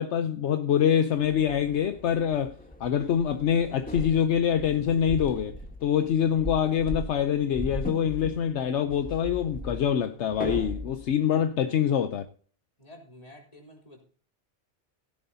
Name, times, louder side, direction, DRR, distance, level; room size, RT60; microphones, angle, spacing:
voice 1, 0.0-2.5 2.8-12.3, left 9 dB, 75° left, 1.0 m, -25 dB
sound 1, 1.1-11.1, equal, 10° left, 1.3 m, -38 dB
voice 2, 12.8-14.0, left 1 dB, 30° left, 3.5 m, -50 dB
16.5 x 10.5 x 2.7 m
omnidirectional pair, 1.2 m